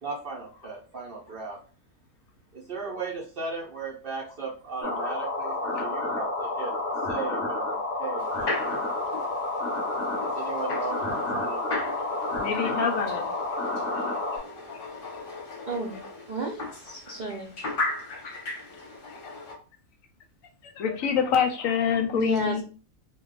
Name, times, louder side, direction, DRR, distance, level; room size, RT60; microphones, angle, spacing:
voice 1, 0.0-1.6 2.5-8.5 10.2-11.9, right 4 dB, 50° right, -2 dB, 0.8 m, -36 dB
sound 1, 4.8-14.4, left 2 dB, 25° left, 1.1 m, -30 dB
sound 2, 8.2-19.5, left 2 dB, 45° left, 0.8 m, -37 dB
voice 2, 12.4-13.3 19.1-19.4 20.6-22.6, left 7 dB, 70° left, 4 dB, 0.9 m, -26 dB
voice 3, 15.7-17.5 22.1-22.6, right 2 dB, 65° right, 0 dB, 0.4 m, -31 dB
2.4 x 2.3 x 3.8 m, 0.37 s
omnidirectional pair, 1.5 m